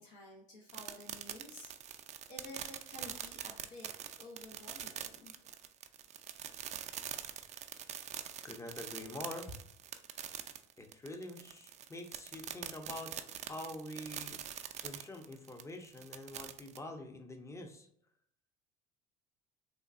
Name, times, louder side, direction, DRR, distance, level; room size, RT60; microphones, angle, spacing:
voice 1, 0.0-3.9 4.2-5.5, left 1 dB, 70° left, -4 dB, 0.9 m, -52 dB
sound 1, 0.7-16.8, right 10 dB, 40° right, 0.4 m, -44 dB
voice 2, 8.4-9.6 10.8-13.1 13.4-14.4 14.8-17.9, left 1 dB, 15° left, 5 dB, 0.6 m, -45 dB
3.6 x 2.3 x 2.5 m, 0.67 s
supercardioid pair, 85°, 18 cm